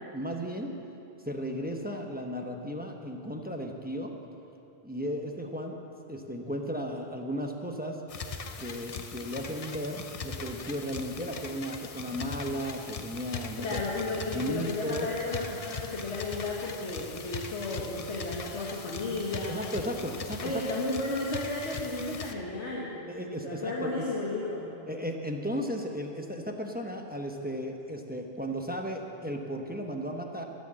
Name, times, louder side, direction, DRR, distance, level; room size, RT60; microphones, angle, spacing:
voice 1, 0.1-0.8 1.2-4.2 4.8-5.8 6.1-8.0 8.6-13.8 14.3-15.1 19.5-20.6 23.1-24.0 24.9-30.4, equal, 10° right, 2 dB, 0.9 m, -35 dB
sound 1, 8.1-22.3, left 4 dB, 40° left, 0.6 m, -40 dB
voice 2, 13.6-19.7 20.4-23.0 23.4-24.7, left 2 dB, 90° left, -4 dB, 1.8 m, -33 dB
13.5 x 9.8 x 7.6 m, 2.8 s
omnidirectional pair, 1.1 m